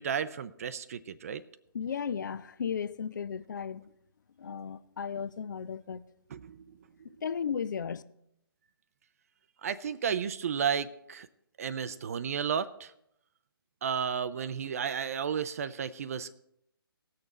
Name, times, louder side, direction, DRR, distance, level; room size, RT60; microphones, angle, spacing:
voice 1, 0.0-1.4 6.3-6.6 9.6-11.3 11.6-12.9 13.8-16.3, right 7 dB, 40° right, 0.5 m, -33 dB
voice 2, 1.7-3.9 4.4-6.0 7.2-8.0, left 7 dB, 50° left, 0.5 m, -35 dB
18.5 x 6.7 x 4.0 m
figure-of-eight pair, 140°, 13 cm